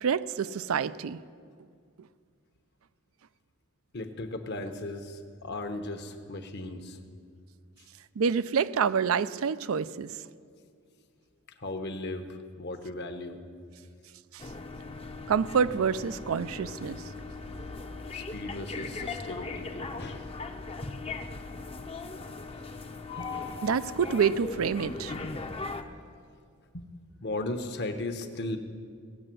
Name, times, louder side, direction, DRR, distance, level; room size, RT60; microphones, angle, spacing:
voice 1, 0.0-1.2 8.2-10.2 14.3-14.4 15.3-17.0 23.6-25.1, right 6 dB, 65° right, 15 dB, 0.4 m, -27 dB
voice 2, 3.9-7.0 11.6-13.4 18.1-20.3 20.7-20.8 22.7-22.8 23.1-23.3 25.2-25.4 25.7-26.0 26.7-26.9 27.2-28.6, left 2 dB, 50° left, 8 dB, 1.0 m, -37 dB
sound 1, 14.4-25.8, left 3 dB, 25° left, 0.7 m, -39 dB
17.5 x 7.7 x 7.6 m, 2.2 s
head